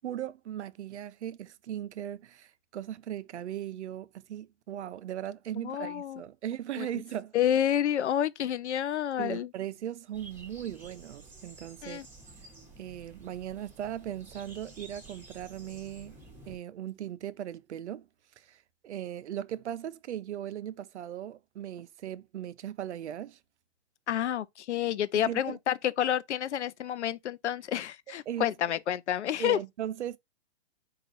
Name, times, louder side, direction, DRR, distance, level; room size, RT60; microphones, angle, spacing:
voice 1, 0.0-7.3 9.2-12.0 12.8-16.2 16.5-18.1 18.4-23.4 25.1-25.6 28.1-28.5 29.4-30.2, right 11 dB, 80° right, 0.6 m, -38 dB
voice 2, 5.6-6.2 6.8-6.9 7.3-9.5 11.8-12.1 24.1-29.6, left 10 dB, 80° left, 0.6 m, -29 dB
sound 1, 10.1-16.6, right 2 dB, 5° right, 1.0 m, -51 dB
4.8 x 2.4 x 3.9 m
hypercardioid pair, 140°, 34 cm